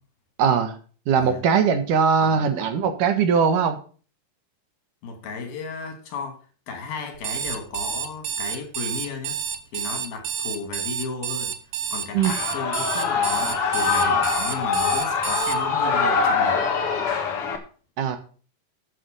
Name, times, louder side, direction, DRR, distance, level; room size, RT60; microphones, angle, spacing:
voice 1, 0.4-0.8 1.1-3.8 12.1-12.3 18.0-18.2, right 6 dB, 70° right, 8 dB, 2.7 m, -20 dB
voice 2, 5.0-6.4 6.7-9.4 9.7-11.6 11.9-16.7, left 5 dB, 80° left, 5 dB, 4.4 m, -34 dB
Alarm, 7.1-15.6, right 8 dB, 85° right, 1.3 m, -29 dB
Shout / Cheering, 12.2-17.6, left 5 dB, 50° left, 2.2 m, -23 dB
12.5 x 7.3 x 5.3 m, 0.40 s
omnidirectional pair, 4.1 m